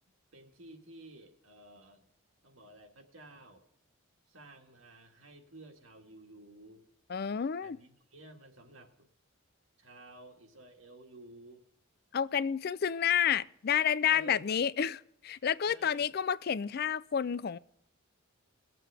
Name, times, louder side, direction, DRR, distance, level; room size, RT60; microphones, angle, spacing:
voice 1, 0.3-2.0 2.4-3.6 4.3-6.9 7.6-9.1 9.8-11.6 14.1-14.7 15.7-16.1, right 1 dB, 70° right, 1.9 m, -53 dB
voice 2, 7.1-7.8 12.1-15.0 15.2-17.6, left 8 dB, 50° left, 0.4 m, -30 dB
21.0 x 7.7 x 3.4 m
head